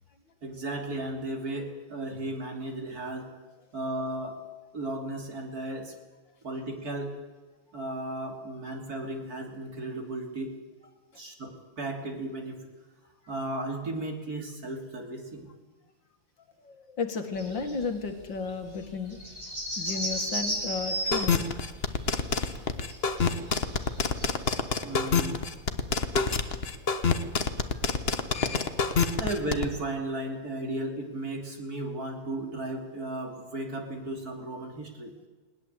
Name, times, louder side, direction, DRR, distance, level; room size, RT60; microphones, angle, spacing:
voice 1, 0.4-3.3 3.7-4.4 4.7-5.9 6.4-7.1 7.7-10.6 11.1-12.7 13.3-15.5 24.8-25.4 29.2-35.1, right 1 dB, 45° right, 3 dB, 3.3 m, -35 dB
voice 2, 16.6-19.2 19.8-21.7 25.7-25.8 26.6-26.7 27.7-27.8 28.1-28.2 29.0-29.2, left 4 dB, 60° left, 6 dB, 2.5 m, -34 dB
sound 1, 17.4-17.8 18.2-18.3 18.4-18.5 18.8-24.6, equal, 25° right, 6.9 m, -34 dB
sound 2, 21.1-29.7, left 5 dB, 35° left, 1.1 m, -26 dB
20.0 x 19.5 x 8.2 m, 1.3 s
omnidirectional pair, 2.3 m